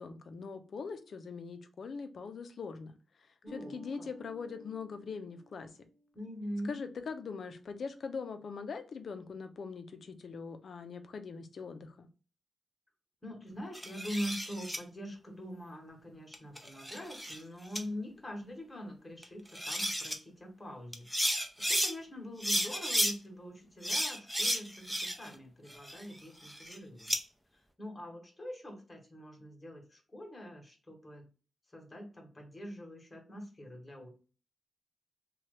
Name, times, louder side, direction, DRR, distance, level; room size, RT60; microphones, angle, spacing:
voice 1, 0.0-2.9 3.2-5.7 6.7-12.1, left 5 dB, 60° left, 8 dB, 0.5 m, -42 dB
voice 2, 3.4-4.1 6.1-6.8 13.2-27.1 27.5-31.3 31.7-34.1, equal, 20° left, 1 dB, 1.1 m, -44 dB
Bass guitar, 3.5-6.1, equal, 40° right, 0.9 m, -53 dB
sound 1, 13.7-14.8 16.3-17.4 17.7-17.8 19.2-19.3 19.5-20.2 20.9-21.9 22.4-23.1 23.8-25.3 25.7-27.2, equal, ahead, 0.5 m, -33 dB
2.9 x 2.3 x 3.2 m, 0.36 s
wide cardioid pair, 125°, 0 cm